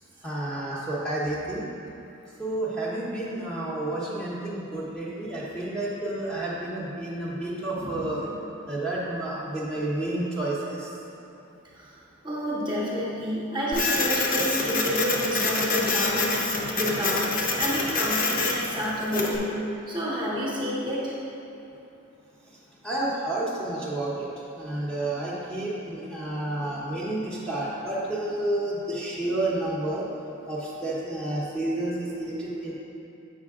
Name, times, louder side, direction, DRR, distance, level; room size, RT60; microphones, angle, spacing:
voice 1, 0.2-1.6 2.4-8.2 8.7-10.9 22.8-24.3 24.6-30.1 30.5-32.7, right 1 dB, 5° left, -8 dB, 0.9 m, -30 dB
voice 2, 7.8-8.3 12.2-17.3 17.5-19.6 19.9-21.1, equal, 20° right, -6 dB, 1.1 m, -29 dB
Printer, 13.7-19.4, left 3 dB, 40° left, 0.6 m, -26 dB
7.6 x 5.4 x 3.6 m, 2.9 s
head